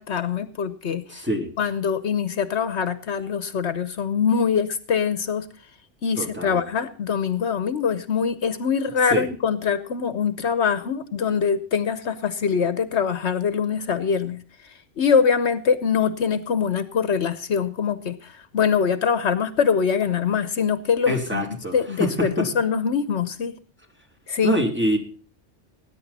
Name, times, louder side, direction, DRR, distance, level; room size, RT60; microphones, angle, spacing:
voice 1, 0.0-1.2 1.6-5.5 6.0-21.4 21.7-23.5 24.3-24.5, left 6 dB, 70° left, 13 dB, 1.1 m, -23 dB
voice 2, 1.1-1.5 6.2-6.6 9.1-9.3 21.1-22.5 24.4-25.0, right 1 dB, 10° right, 1 dB, 2.7 m, -25 dB
19.5 x 9.8 x 4.1 m, 0.43 s
omnidirectional pair, 1.2 m